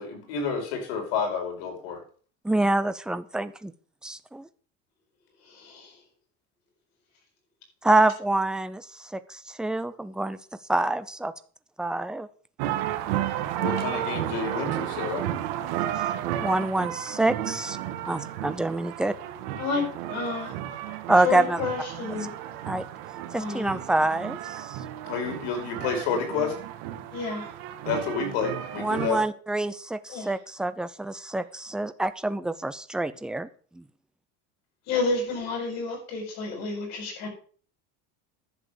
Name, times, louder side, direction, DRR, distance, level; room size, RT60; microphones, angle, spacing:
voice 1, 0.0-2.0 13.6-15.2 25.1-26.5 27.8-29.2, left 5 dB, 90° left, 3 dB, 5.1 m, -29 dB
voice 2, 2.4-3.7 4.0-4.5 7.8-8.9 9.1-10.4 10.7-11.3 11.8-12.3 16.4-17.8 18.1-19.1 21.1-21.6 22.6-22.8 23.3-24.8 28.8-33.5 33.8-33.9, right 2 dB, ahead, 12 dB, 0.5 m, -26 dB
voice 3, 5.5-5.9 19.6-20.5 21.2-22.3 23.3-23.7 27.1-27.5 30.1-30.3 34.9-37.3, left 3 dB, 55° left, 0 dB, 7.7 m, -30 dB
sound 1, 12.6-29.1, right 12 dB, 85° right, 1.8 m, -33 dB
11.0 x 7.4 x 6.7 m, 0.44 s
cardioid pair, 165°, 32 cm